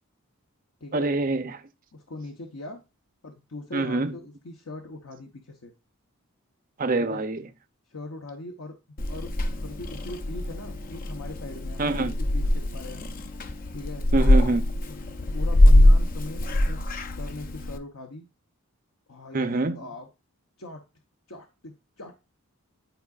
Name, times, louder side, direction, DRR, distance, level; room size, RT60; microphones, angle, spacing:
voice 1, 0.9-1.6 3.7-4.2 6.8-7.5 11.8-12.1 14.1-14.7 19.3-19.8, right 2 dB, 40° right, 0.6 m, -25 dB
voice 2, 1.9-2.8 3.2-5.7 7.0-7.2 7.9-8.8 9.1-13.0 13.7-14.1 14.9-15.0 15.3-16.8 17.2-18.2 19.1-19.5 19.7-20.1 20.6-20.8 21.3-22.2, left 2 dB, 65° left, 0.9 m, -40 dB
Purr / Meow, 9.0-17.8, left 1 dB, 40° left, 0.5 m, -22 dB
11.0 x 4.8 x 2.4 m
head